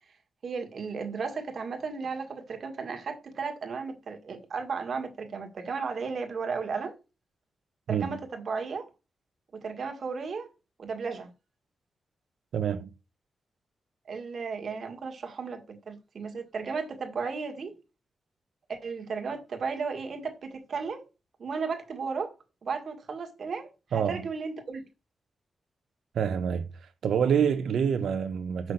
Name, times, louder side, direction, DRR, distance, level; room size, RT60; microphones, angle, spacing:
voice 1, 0.4-6.9 7.9-8.9 9.5-10.5 10.8-11.3 14.1-17.7 18.7-21.0 21.4-22.3 22.6-24.9, right 5 dB, 50° right, 1.8 m, -34 dB
voice 2, 7.9-8.2 12.5-12.9 23.9-24.2 26.1-26.7 27.0-28.7, right 7 dB, 90° right, 1.0 m, -27 dB
6.1 x 5.8 x 6.6 m
wide cardioid pair, 155°, 0 cm